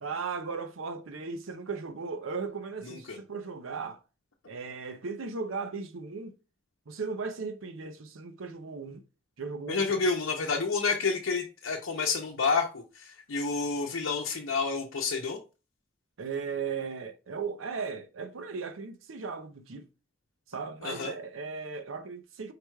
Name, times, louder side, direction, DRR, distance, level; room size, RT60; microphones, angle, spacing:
voice 1, 0.0-4.0 4.5-6.3 6.9-9.0 9.4-10.0 16.2-19.9 20.5-22.5, right 5 dB, 80° right, 0.6 m, -37 dB
voice 2, 2.9-3.2 9.7-15.4 20.8-21.1, left 4 dB, 75° left, 0.7 m, -29 dB
4.8 x 2.3 x 4.6 m
head